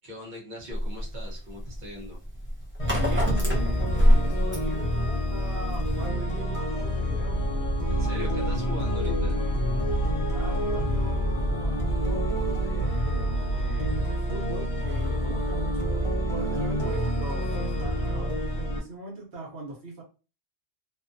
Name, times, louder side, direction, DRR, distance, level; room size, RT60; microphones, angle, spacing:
voice 1, 0.0-2.2 7.9-9.4, left 1 dB, 45° right, -3 dB, 1.0 m, -41 dB
sound 1, 0.7-6.1, equal, 15° right, 0.5 m, -25 dB
sound 2, 2.8-18.8, equal, 35° left, 0.7 m, -28 dB
voice 2, 2.9-7.4 10.1-20.0, right 2 dB, 75° right, -2 dB, 1.2 m, -40 dB
sound 3, 7.2-14.0, right 3 dB, 80° left, 0.9 m, -32 dB
2.6 x 2.3 x 2.5 m, 0.33 s
omnidirectional pair, 1.1 m